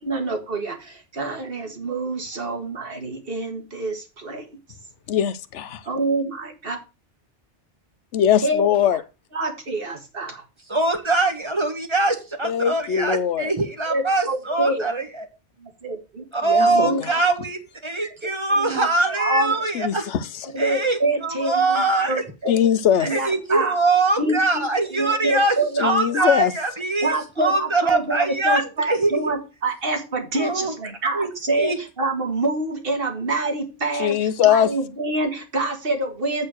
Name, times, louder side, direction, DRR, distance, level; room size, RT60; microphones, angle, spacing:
voice 1, 0.0-4.6 5.9-6.8 8.4-8.7 9.3-10.4 13.9-14.9 15.6-16.2 16.6-17.2 18.0-18.1 18.6-19.6 20.5-22.6 23.0-23.8 24.2-24.6 24.9-25.9 26.2-26.3 27.0-36.5, right 2 dB, 50° right, 2.0 m, -26 dB
voice 2, 5.1-5.8 8.1-9.0 12.4-13.5 16.5-17.1 19.7-20.3 22.5-23.1 25.8-26.5 34.0-34.7, left 9 dB, 80° left, 1.0 m, -21 dB
voice 3, 10.7-15.3 16.3-20.1 20.6-22.2 23.0-29.3 30.3-30.7 31.1-31.8, right 3 dB, 25° right, 1.4 m, -23 dB
8.5 x 4.5 x 6.3 m
omnidirectional pair, 1.2 m